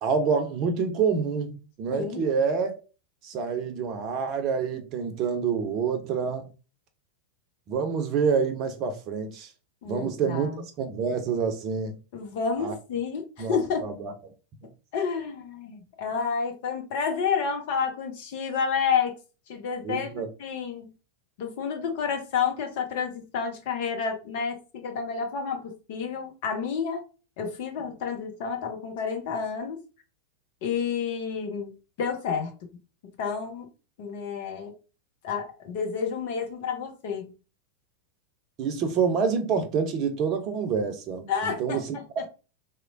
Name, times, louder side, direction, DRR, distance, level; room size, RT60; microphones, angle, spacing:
voice 1, 0.0-2.8 3.2-6.5 7.7-9.5 9.9-10.5 10.8-12.0 12.6-12.7 13.4-14.3 14.6-14.7 19.8-20.3 38.6-42.0, right 6 dB, 40° right, 0.6 m, -27 dB
voice 2, 1.9-2.3 9.8-10.6 12.1-13.9 14.9-19.1 19.5-20.9 21.4-27.0 27.4-29.8 30.6-31.7 32.0-32.5 33.0-33.7 34.0-34.7 35.2-37.3 41.3-41.8 42.2-42.3, left 6 dB, 50° left, 0.7 m, -30 dB
3.0 x 2.1 x 2.5 m
figure-of-eight pair, 90°, 0 cm